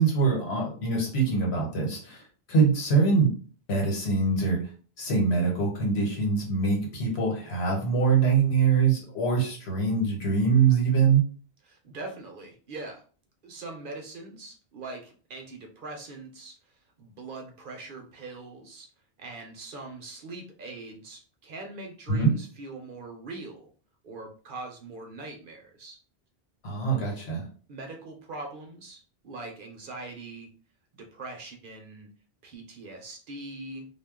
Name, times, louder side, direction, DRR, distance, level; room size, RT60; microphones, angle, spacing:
voice 1, 0.0-2.2 2.5-3.3 3.7-4.6 5.0-11.2 22.1-22.3 26.6-27.5, right 5 dB, 85° left, -1 dB, 1.3 m, -23 dB
voice 2, 11.7-13.0 13.4-16.6 17.0-18.9 19.2-23.7 24.0-26.0 27.7-30.5 30.9-32.1 32.4-33.9, right 2 dB, 55° right, 3 dB, 0.8 m, -42 dB
2.3 x 2.2 x 3.5 m, 0.40 s
omnidirectional pair, 1.1 m